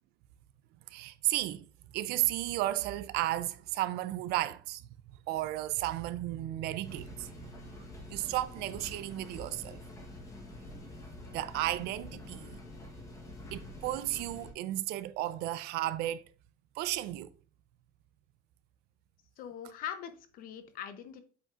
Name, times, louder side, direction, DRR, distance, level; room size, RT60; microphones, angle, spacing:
voice 1, 0.9-1.7 1.9-4.8 5.3-7.7 8.1-9.8 11.3-12.6 13.5-16.2 16.8-17.3, right 15 dB, 55° right, 0.4 m, -33 dB
sound 1, 6.8-14.5, left 1 dB, 15° left, 1.0 m, -47 dB
voice 2, 19.4-21.2, left 9 dB, 45° left, 0.8 m, -42 dB
7.8 x 5.2 x 2.4 m
cardioid pair, 180°, 20 cm